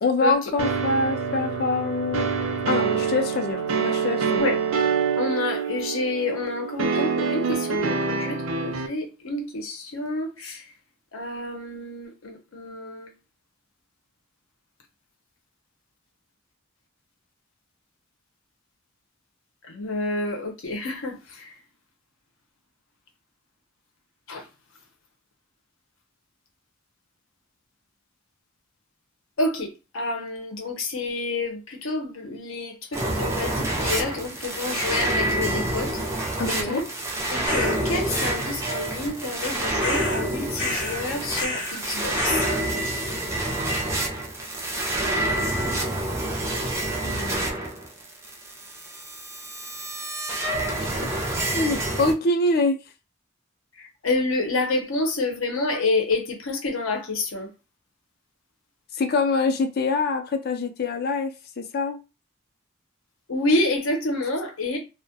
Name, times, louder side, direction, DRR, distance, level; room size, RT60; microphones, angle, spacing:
voice 1, 0.0-2.3 2.7-4.5 36.4-36.9 47.0-47.5 50.8-51.2 51.5-52.8 58.9-62.0, left 3 dB, 50° left, 0.4 m, -25 dB
sound 1, 0.6-8.9, right 5 dB, 75° right, 0.5 m, -26 dB
voice 2, 5.2-10.5 11.1-13.1 19.7-21.2 24.3-24.4 29.4-29.7 29.9-35.9 36.7-36.8 37.3-42.4 54.0-57.5 63.3-64.8, left 2 dB, 75° left, 0.7 m, -28 dB
sound 2, 32.9-52.1, right 1 dB, 15° right, 0.4 m, -28 dB
sound 3, 37.5-37.8 39.8-40.2 40.6-41.0 41.3-41.8 42.1-42.6, left 2 dB, 25° left, 0.8 m, -30 dB
2.2 x 2.1 x 2.7 m
head